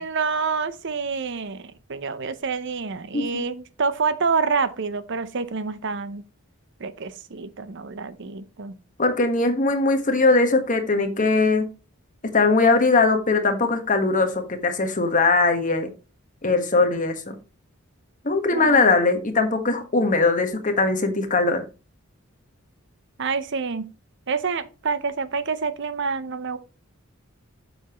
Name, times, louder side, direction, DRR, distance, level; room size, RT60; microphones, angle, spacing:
voice 1, 0.0-6.2 6.8-8.7 18.5-18.9 23.2-23.9 24.3-26.6, right 5 dB, 55° right, 0.7 m, -27 dB
voice 2, 3.1-3.4 9.0-11.7 12.2-15.9 16.4-17.4 18.2-21.6, left 3 dB, 35° left, 1.5 m, -20 dB
8.3 x 7.1 x 3.0 m
head